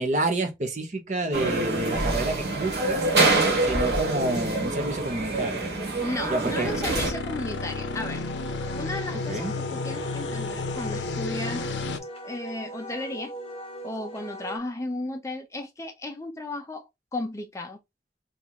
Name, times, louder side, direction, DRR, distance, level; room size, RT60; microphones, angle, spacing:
voice 1, 0.0-3.1 3.6-5.7 6.3-6.7 9.3-9.5, right 2 dB, 40° right, 0.7 m, -29 dB
sound 1, 1.3-7.1, right 2 dB, 65° right, 1.2 m, -25 dB
Wind instrument woodwind instrument, 4.2-14.6, right 1 dB, 35° left, 0.9 m, -41 dB
voice 2, 6.0-8.3 8.8-11.7 12.2-13.3 13.8-16.8 17.1-17.8, left 2 dB, 15° left, 0.5 m, -34 dB
sound 2, 6.6-12.0, left 3 dB, 85° left, 0.5 m, -32 dB
2.9 x 2.4 x 3.7 m
head